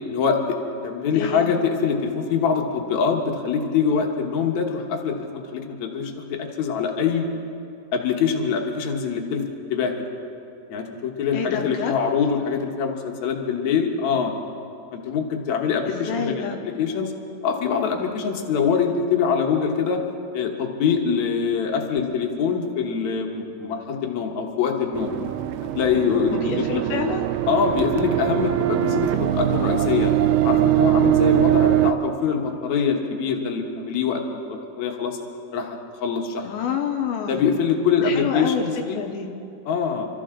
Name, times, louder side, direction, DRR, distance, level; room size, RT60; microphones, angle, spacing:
voice 1, 0.1-0.4 0.8-7.3 7.9-9.4 9.7-10.1 10.7-14.3 14.9-17.1 17.4-20.0 20.3-25.1 25.7-26.8 27.5-30.1 30.4-35.2 35.5-36.5 37.3-39.0 39.7-40.1, left 6 dB, 60° left, 2 dB, 2.0 m, -24 dB
voice 2, 1.1-1.5 11.3-11.9 15.9-16.6 26.3-27.2 36.4-37.4 38.0-39.3, left 7 dB, 75° left, 3 dB, 2.6 m, -28 dB
sound 1, 24.9-31.9, right 13 dB, 85° right, 2.4 m, -21 dB
27.5 x 14.0 x 3.8 m, 2.6 s
omnidirectional pair, 4.6 m